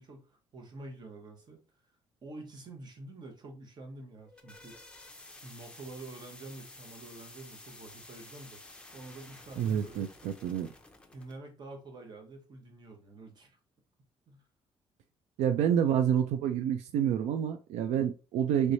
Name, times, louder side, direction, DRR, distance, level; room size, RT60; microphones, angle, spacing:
voice 1, 0.0-1.6 2.2-4.9 5.3-8.6 8.9-10.1 11.1-13.6 14.3-14.4, right 2 dB, 40° right, 3 dB, 1.0 m, -47 dB
sound 1, 4.1-11.4, left 2 dB, 10° left, 0.6 m, -52 dB
voice 2, 9.6-10.7 15.4-18.7, right 9 dB, 90° right, 7 dB, 0.4 m, -28 dB
3.2 x 3.1 x 2.6 m, 0.34 s
cardioid pair, 125°, 11 cm